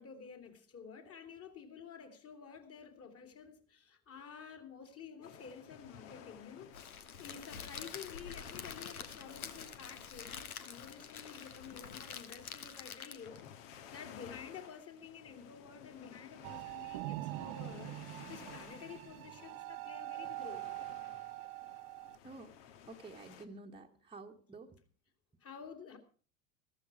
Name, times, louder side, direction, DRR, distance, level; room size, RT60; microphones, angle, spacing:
voice 1, 0.0-17.9 18.3-20.7 25.4-26.0, left 6 dB, 35° left, 3.0 m, -51 dB
sound 1, 5.2-23.4, left 9 dB, 65° left, 1.7 m, -56 dB
Crackle, 6.7-13.5, left 7 dB, 85° left, 1.5 m, -47 dB
sound 2, 16.4-22.2, right 18 dB, 50° right, 0.8 m, -44 dB
voice 2, 22.2-22.6 22.9-24.8, right 3 dB, 10° right, 1.3 m, -51 dB
14.5 x 13.5 x 4.8 m
hypercardioid pair, 85°, 42 cm